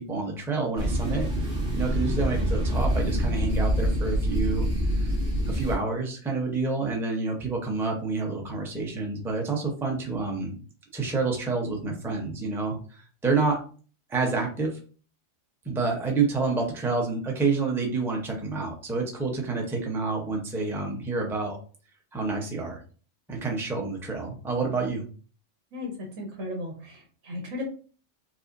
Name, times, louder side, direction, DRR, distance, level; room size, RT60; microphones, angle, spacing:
voice 1, 0.0-4.7 5.0-5.1 5.5-10.6 10.9-13.6 14.1-14.8 15.6-21.6 22.1-22.8 23.3-25.0, right 4 dB, 5° right, 0 dB, 0.4 m, -28 dB
sound 1, 0.8-5.7, equal, 55° right, 2.1 m, -26 dB
voice 2, 25.7-27.6, left 2 dB, 80° right, 0 dB, 1.2 m, -36 dB
4.9 x 2.1 x 2.5 m, 0.40 s
omnidirectional pair, 1.4 m